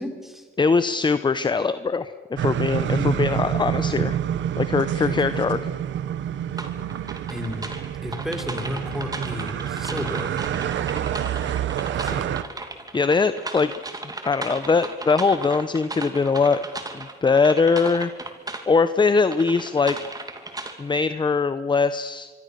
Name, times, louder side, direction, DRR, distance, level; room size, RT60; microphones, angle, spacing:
voice 1, 0.0-0.5 2.9-3.2 4.9-5.3 7.3-7.7 8.0-10.4 12.0-12.3, left 1 dB, ahead, 4 dB, 3.8 m, -32 dB
voice 2, 0.6-4.2 4.6-5.6 12.9-13.7 14.2-16.6 16.9-18.1 18.7-20.0 20.8-22.3, left 4 dB, 25° left, 13 dB, 0.8 m, -21 dB
sound 1, 2.4-12.4, right 10 dB, 70° right, 1.1 m, -27 dB
sound 2, 6.6-18.7 19.2-20.9, right 2 dB, 20° right, 2.8 m, -36 dB
25.0 x 24.5 x 6.8 m, 1.5 s
cardioid pair, 90°, 20 cm